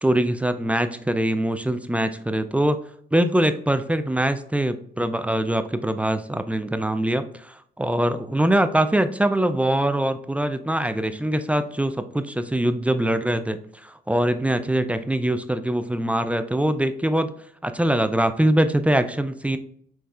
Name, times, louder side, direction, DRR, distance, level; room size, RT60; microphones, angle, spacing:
voice 1, 0.0-2.8 3.1-17.3 17.6-19.6, right 1 dB, 5° right, 10 dB, 0.3 m, -23 dB
5.8 x 3.1 x 2.3 m, 0.63 s
cardioid pair, 90°, 20 cm